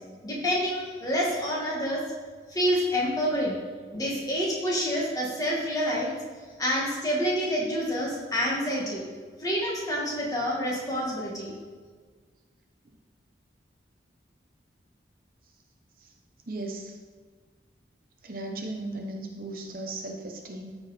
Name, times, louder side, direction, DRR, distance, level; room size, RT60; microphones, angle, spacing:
voice 1, 0.2-2.0 2.5-3.5 3.9-6.1 6.6-9.0 9.4-11.5, equal, 20° left, -4 dB, 2.0 m, -27 dB
voice 2, 16.5-17.0 18.2-20.7, right 2 dB, 50° right, 2 dB, 0.8 m, -36 dB
13.5 x 4.7 x 4.3 m, 1.5 s
head